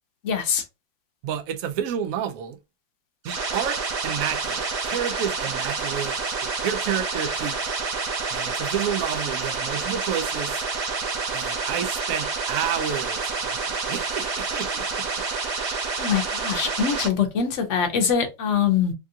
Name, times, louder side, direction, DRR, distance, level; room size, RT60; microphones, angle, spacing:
voice 1, 0.2-0.6 16.0-18.9, left 7 dB, 60° left, 0.8 m, -23 dB
voice 2, 1.2-2.6 3.2-6.2 6.4-7.6 8.3-10.6 11.3-15.2, right 9 dB, 80° right, 0.7 m, -30 dB
sound 1, 3.2-17.1, right 4 dB, 55° right, 1.1 m, -28 dB
3.5 x 2.3 x 2.7 m
omnidirectional pair, 2.0 m